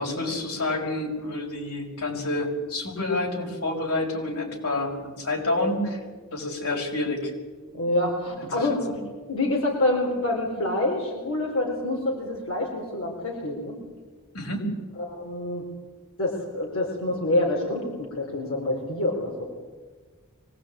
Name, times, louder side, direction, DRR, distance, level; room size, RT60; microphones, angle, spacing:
voice 1, 0.0-6.0 6.3-7.3 8.3-8.5 8.9-9.0 14.3-14.8, left 2 dB, 90° left, 1 dB, 5.9 m, -28 dB
voice 2, 7.7-8.8 9.3-13.8 15.0-15.7 16.2-19.4, left 2 dB, 65° left, 0 dB, 4.2 m, -27 dB
24.5 x 19.5 x 8.7 m, 1.4 s
head